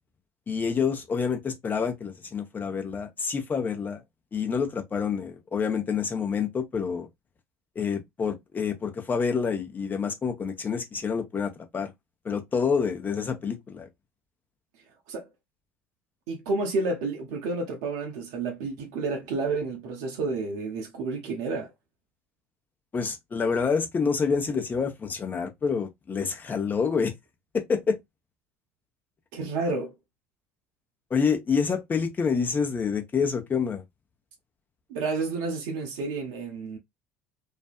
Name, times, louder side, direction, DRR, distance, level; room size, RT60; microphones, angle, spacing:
voice 1, 0.5-4.0 4.3-7.1 7.8-11.9 12.2-13.9 22.9-27.1 27.5-28.0 31.1-33.8, left 6 dB, 30° left, 0.7 m, -27 dB
voice 2, 16.3-21.7 29.3-29.9 34.9-36.8, right 3 dB, 65° right, 0.6 m, -30 dB
2.5 x 2.2 x 2.2 m
figure-of-eight pair, 65°, 7 cm